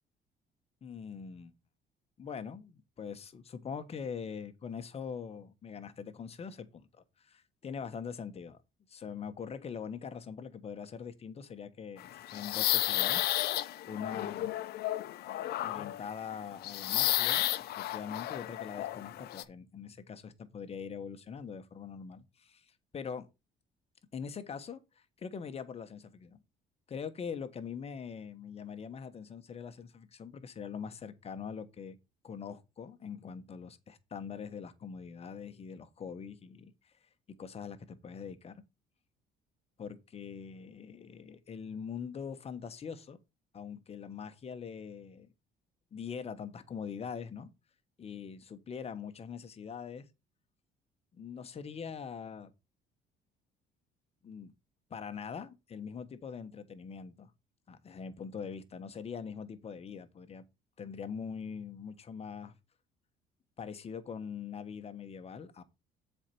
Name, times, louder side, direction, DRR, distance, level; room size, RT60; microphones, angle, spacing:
voice 1, 0.8-1.5 2.2-8.6 8.9-13.2 13.6-14.5 15.6-23.3 24.1-26.4 26.9-32.0 32.2-36.9 37.4-38.6 39.8-43.2 43.5-45.3 45.9-47.5 48.0-50.0 51.1-52.5 54.2-54.5 54.9-57.3 57.7-60.4 60.8-62.5 63.6-65.6, left 6 dB, 35° left, 1.2 m, -43 dB
sound 1, 12.0-19.4, left 14 dB, 70° left, 0.6 m, -32 dB
7.4 x 4.5 x 5.4 m
cardioid pair, 110°, 17 cm